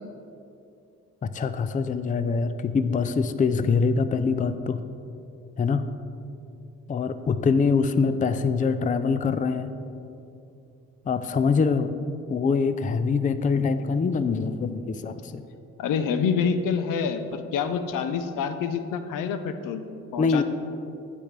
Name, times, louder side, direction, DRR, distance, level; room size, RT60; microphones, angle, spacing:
voice 1, 1.2-4.8 5.6-5.8 6.9-9.7 11.1-11.9 12.3-15.4 20.2-20.4, left 5 dB, 25° left, 11 dB, 0.4 m, -24 dB
voice 2, 15.8-19.8 20.1-20.4, left 6 dB, 75° left, 9 dB, 0.7 m, -27 dB
15.0 x 5.3 x 3.3 m, 2.7 s
supercardioid pair, 65°, 33 cm